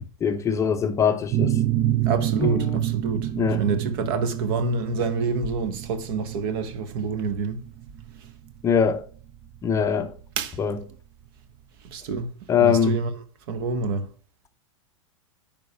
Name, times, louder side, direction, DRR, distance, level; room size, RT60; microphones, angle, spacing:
voice 1, 0.2-1.6 2.4-2.8 3.4-3.6 8.6-9.0 9.6-10.1 10.6-10.8 12.5-13.0, left 7 dB, 15° left, 0.7 m, -22 dB
sound 1, 1.3-10.7, right 13 dB, 25° right, 0.4 m, -28 dB
voice 2, 2.0-3.3 3.6-7.6 10.4-10.6 11.8-12.3 12.6-13.1 13.5-14.1, right 4 dB, 45° right, 1.2 m, -27 dB
10.0 x 3.7 x 5.8 m
figure-of-eight pair, 95°, 17 cm